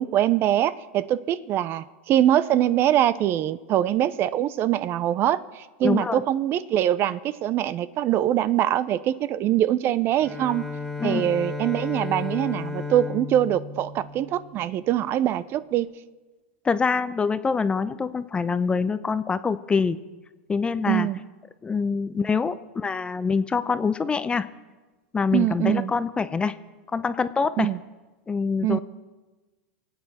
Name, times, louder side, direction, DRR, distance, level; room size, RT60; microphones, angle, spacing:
voice 1, 0.0-10.7 11.0-15.9 20.9-21.2 25.3-25.9 27.6-27.8 28.6-28.8, right 12 dB, 40° right, 16 dB, 0.5 m, -23 dB
voice 2, 5.8-6.2 11.0-11.2 16.6-20.0 20.5-21.1 21.6-24.5 25.1-26.5 26.9-27.7 28.3-28.8, left 5 dB, 15° left, 13 dB, 0.6 m, -25 dB
Bowed string instrument, 10.1-15.1, left 4 dB, 5° right, 1.7 m, -34 dB
26.0 x 8.8 x 4.2 m, 1.2 s
hypercardioid pair, 115°, 6 cm